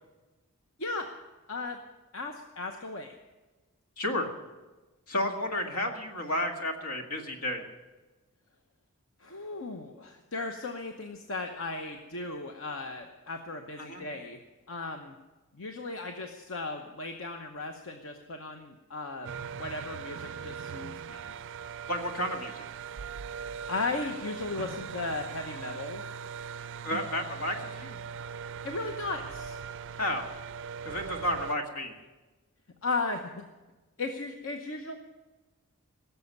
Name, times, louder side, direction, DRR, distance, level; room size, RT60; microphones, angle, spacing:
voice 1, 0.8-1.1 1.5-1.8 2.1-3.1 9.2-14.4 14.7-15.1 15.5-21.3 23.7-26.0 26.9-27.0 28.6-29.6 32.8-33.4 34.0-34.9, left 3 dB, 60° left, 4 dB, 0.9 m, -36 dB
voice 2, 4.0-4.3 5.1-7.7 13.8-14.0 21.9-22.6 26.8-28.0 30.0-30.3 30.9-31.9, left 1 dB, 80° left, 4 dB, 1.9 m, -32 dB
sound 1, 19.2-31.6, right 6 dB, 55° right, 0.4 m, -40 dB
17.0 x 7.0 x 9.6 m, 1.2 s
head